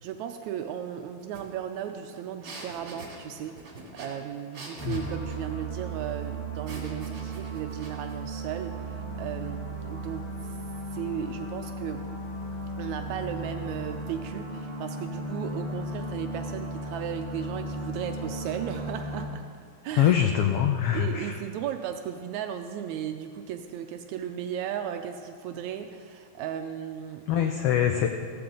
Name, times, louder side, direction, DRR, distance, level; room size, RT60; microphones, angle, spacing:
voice 1, 0.0-10.6 10.9-12.0 12.8-19.5 19.8-20.1 20.9-27.5, right 9 dB, 80° right, 6 dB, 1.9 m, -36 dB
sound 1, 1.3-1.4 1.7-5.5 6.7-8.2, right 2 dB, 45° right, 2.7 m, -44 dB
sound 2, 4.8-19.3, right 2 dB, 15° left, 1.1 m, -36 dB
voice 2, 20.0-21.4 27.3-28.1, left 10 dB, 80° left, 5 dB, 1.3 m, -23 dB
15.0 x 14.5 x 3.9 m, 2.2 s
omnidirectional pair, 3.4 m